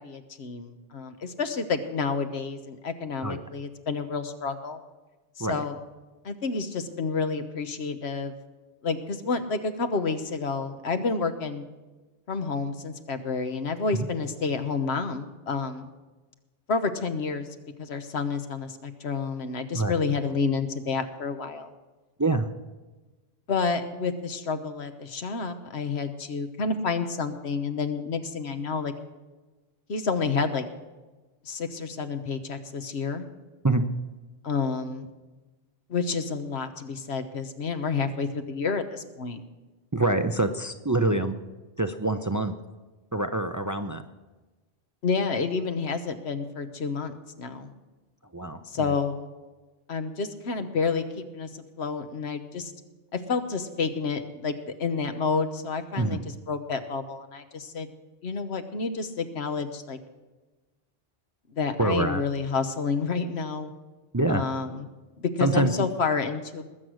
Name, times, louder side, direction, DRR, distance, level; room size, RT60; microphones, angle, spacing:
voice 1, 0.0-4.8 5.4-5.8 6.2-8.3 8.8-11.6 12.3-15.9 16.7-17.5 17.8-21.7 23.5-28.9 29.9-30.7 31.4-33.3 34.4-35.1 35.9-39.4 45.0-47.7 48.7-49.3 49.9-52.7 53.1-56.2 56.5-57.9 58.2-60.0 61.5-63.7 64.3-64.9 65.2-66.6, left 4 dB, 85° left, 9 dB, 1.3 m, -29 dB
voice 2, 39.9-41.3 41.8-42.5 43.1-44.0 48.3-48.9 56.0-56.2 61.8-62.2 64.1-64.5 65.4-65.9, right 2 dB, 25° right, 8 dB, 0.5 m, -25 dB
20.0 x 7.8 x 6.3 m, 1.2 s
omnidirectional pair, 1.1 m